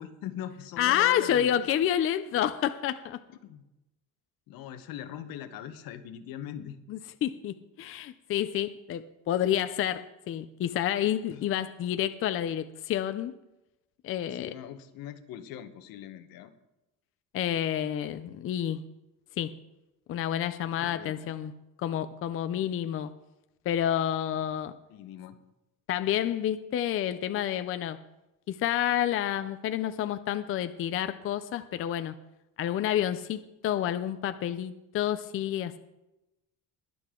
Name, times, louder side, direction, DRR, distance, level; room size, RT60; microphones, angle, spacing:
voice 1, 0.0-1.7 3.4-3.6 4.5-6.8 11.3-11.4 14.3-16.5 20.8-21.3 24.9-25.4, left 10 dB, 80° left, 9 dB, 1.2 m, -41 dB
voice 2, 0.8-3.2 6.9-13.3 14.0-14.5 17.3-18.8 19.4-19.5 20.1-21.5 21.8-23.1 23.7-24.7 25.9-28.0 28.5-32.2 32.6-35.8, left 11 dB, 40° left, 11 dB, 0.5 m, -29 dB
21.5 x 7.7 x 3.8 m, 0.96 s
cardioid pair, 155°, 34 cm